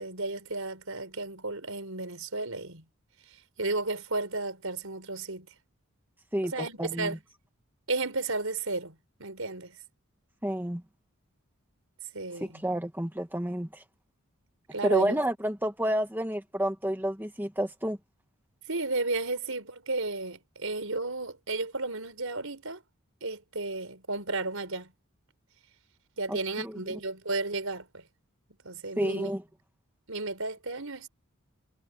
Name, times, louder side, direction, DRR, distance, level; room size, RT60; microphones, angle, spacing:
voice 1, 0.0-2.8 3.6-5.5 6.4-7.2 7.9-9.8 12.1-12.6 14.7-15.2 18.7-22.8 23.2-24.9 26.2-28.0 28.6-29.3 30.1-31.1, right 3 dB, 70° right, 5.0 m, -33 dB
voice 2, 6.8-7.1 10.4-10.8 12.4-13.8 14.8-18.0 26.3-27.0 29.0-29.4, equal, 10° right, 1.4 m, -30 dB
head